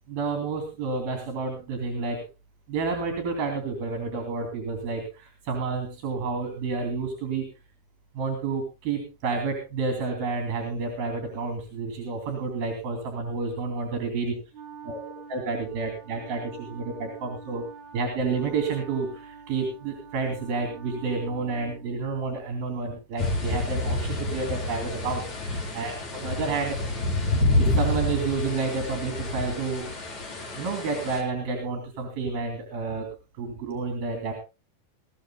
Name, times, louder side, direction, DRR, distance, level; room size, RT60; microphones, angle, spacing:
voice 1, 0.1-2.2 2.7-7.5 8.1-14.4 14.8-15.0 15.3-17.6 17.9-26.8 27.5-30.1 30.5-33.1 33.4-34.3, right 4 dB, 75° right, 4 dB, 4.8 m, -30 dB
Wind instrument woodwind instrument, 14.5-22.1, right 5 dB, 50° right, 4.8 m, -46 dB
sound 1, 23.2-31.2, left 2 dB, 50° left, 5.4 m, -28 dB
21.0 x 16.0 x 2.2 m, 0.29 s
omnidirectional pair, 4.2 m